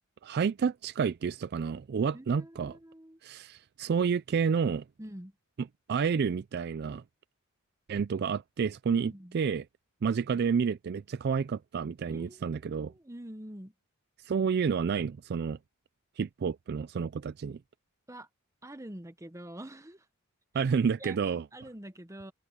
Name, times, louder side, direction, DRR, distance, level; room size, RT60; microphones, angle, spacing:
voice 1, 0.2-2.8 3.2-4.8 5.9-7.0 7.9-9.6 10.0-12.9 14.2-15.6 16.2-17.6 20.5-21.4, right 6 dB, 50° right, 0.3 m, -30 dB
voice 2, 2.1-3.2 5.0-5.3 9.1-9.4 12.1-13.7 18.1-18.3 18.6-20.1 20.5-20.7 21.0-21.2 21.5-22.3, right 1 dB, 15° right, 1.1 m, -46 dB
open air
head